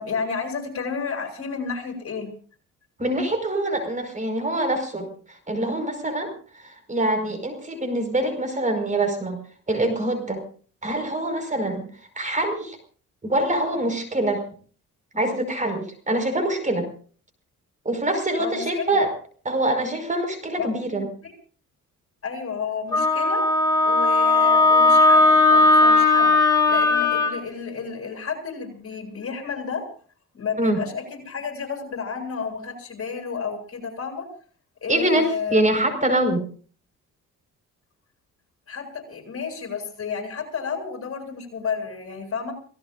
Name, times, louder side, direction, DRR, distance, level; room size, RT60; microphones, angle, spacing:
voice 1, 0.0-2.3 18.4-18.9 20.6-20.7 21.2-21.3 22.2-23.5 23.8-26.3 26.7-29.8 30.3-34.3 34.8-35.6 38.7-42.5, left 5 dB, 50° left, 4 dB, 7.7 m, -31 dB
voice 2, 3.0-9.4 9.7-10.4 10.8-11.8 12.1-12.8 13.2-14.4 15.1-16.9 17.8-19.1 19.4-21.1 30.6-30.8 34.9-36.4, right 1 dB, 25° right, 7 dB, 5.1 m, -24 dB
Wind instrument woodwind instrument, 22.9-27.3, left 3 dB, 10° left, 7.8 m, -17 dB
29.5 x 18.5 x 2.6 m, 0.43 s
cardioid pair, 90°, 30 cm